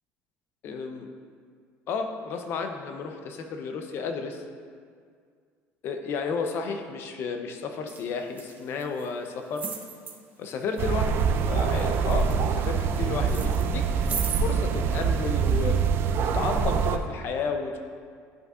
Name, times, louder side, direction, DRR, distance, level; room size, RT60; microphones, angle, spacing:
voice 1, 0.6-1.1 1.9-4.4 5.8-9.7 10.4-11.2 11.5-15.8 16.3-17.8, left 5 dB, 50° left, 5 dB, 0.7 m, -32 dB
sound 1, 7.9-8.0 8.3-9.1 9.5-10.1 10.8-11.3 11.5-13.0 13.3-14.4 15.2-15.3, right 6 dB, 30° right, 0.8 m, -36 dB
sound 2, 10.8-17.0, right 6 dB, 45° right, 0.4 m, -25 dB
11.5 x 5.4 x 2.5 m, 2.1 s
cardioid pair, 145°, 5 cm